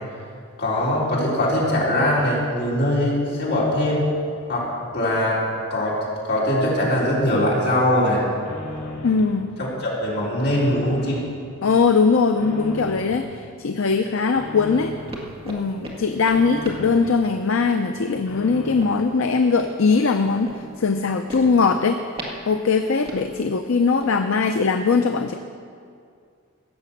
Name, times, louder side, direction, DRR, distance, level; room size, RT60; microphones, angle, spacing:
voice 1, 0.6-4.1 4.5-5.4 5.7-6.0 6.2-8.2 9.6-11.2, left 1 dB, 50° left, -6 dB, 3.7 m, -21 dB
sound 1, 7.8-9.4 9.7-11.3 11.7-13.3 13.7-15.2 15.6-17.2 17.6-19.2 19.6-19.7 20.0-20.1 20.2-21.1 21.4-21.5, left 2 dB, 85° left, 3.3 m, -38 dB
voice 2, 9.0-9.6 11.6-14.9 15.5-20.5 20.8-22.0 22.5-25.3, left 4 dB, 65° left, 6 dB, 0.5 m, -20 dB
sound 2, 14.2-24.1, right 1 dB, 25° right, 1.8 m, -39 dB
16.5 x 6.8 x 7.2 m, 2.3 s
head